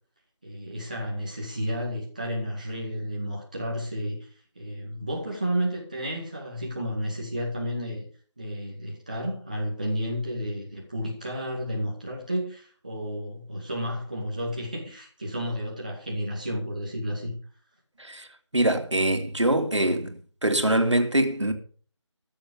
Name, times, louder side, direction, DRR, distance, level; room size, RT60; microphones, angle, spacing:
voice 1, 0.4-4.3 4.5-8.1 8.4-17.4, equal, 15° right, 2.1 m, -32 dB
voice 2, 18.5-20.1 20.4-21.5, right 1 dB, 65° right, 3.0 m, -23 dB
14.5 x 7.8 x 7.1 m
figure-of-eight pair, 180°, 16 cm